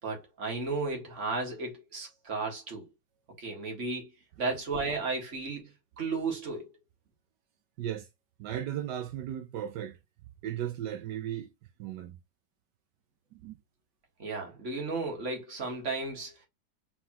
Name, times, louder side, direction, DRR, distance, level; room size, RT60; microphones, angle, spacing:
voice 1, 0.0-2.9 3.4-4.1 4.4-6.7 14.2-16.5, right 3 dB, 45° right, 2.0 m, -34 dB
voice 2, 7.8-8.1 8.4-10.0 10.4-11.5 11.8-12.2 13.3-13.6, right 11 dB, 85° right, 1.4 m, -36 dB
4.7 x 3.6 x 2.9 m
omnidirectional pair, 1.8 m